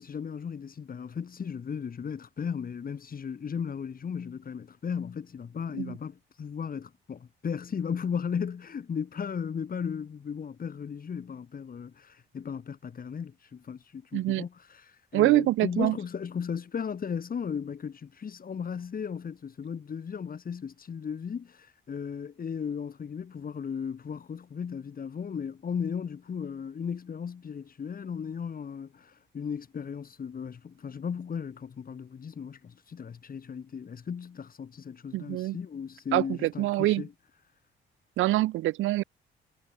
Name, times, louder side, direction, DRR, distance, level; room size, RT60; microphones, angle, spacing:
voice 1, 0.0-37.1, left 7 dB, 45° left, 5.2 m, -36 dB
voice 2, 14.1-14.4 15.1-16.0 35.1-35.6 36.1-37.0 38.2-39.0, right 16 dB, 80° right, 0.6 m, -25 dB
cardioid pair, 90°, 20 cm